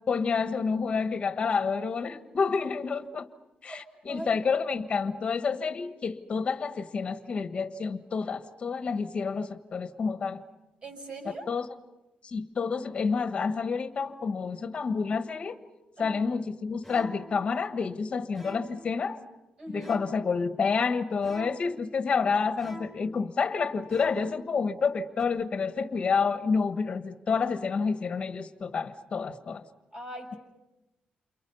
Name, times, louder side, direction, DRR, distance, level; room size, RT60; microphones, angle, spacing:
voice 1, 0.1-3.3 3.6-10.4 11.5-11.7 12.2-15.6 16.0-19.2 19.7-29.6, left 5 dB, 40° left, 9 dB, 1.4 m, -29 dB
voice 2, 3.7-4.4 10.8-11.5 16.0-16.2 19.6-19.9 29.9-30.4, right 1 dB, 35° right, 0 dB, 6.6 m, -41 dB
sound 1, 16.8-17.4 18.3-18.9 19.8-20.4 21.2-21.8 22.6-23.1 23.9-24.4 25.2-25.3, right 1 dB, 5° right, 4.3 m, -46 dB
29.0 x 29.0 x 5.5 m, 0.99 s
wide cardioid pair, 155°, 3 cm